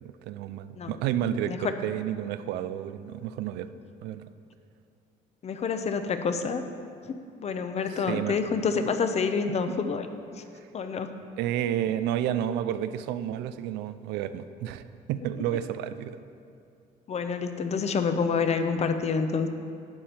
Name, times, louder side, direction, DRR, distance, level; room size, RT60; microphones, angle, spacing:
voice 1, 0.0-3.7 4.0-4.3 8.1-8.4 9.7-9.8 11.4-16.2, right 11 dB, 90° right, 12 dB, 0.5 m, -31 dB
voice 2, 5.4-6.6 7.4-10.1 10.3-10.4 10.7-11.1 17.1-19.5, left 5 dB, 40° left, 8 dB, 0.8 m, -27 dB
12.0 x 8.5 x 4.4 m, 2.4 s
cardioid pair, 110°, 17 cm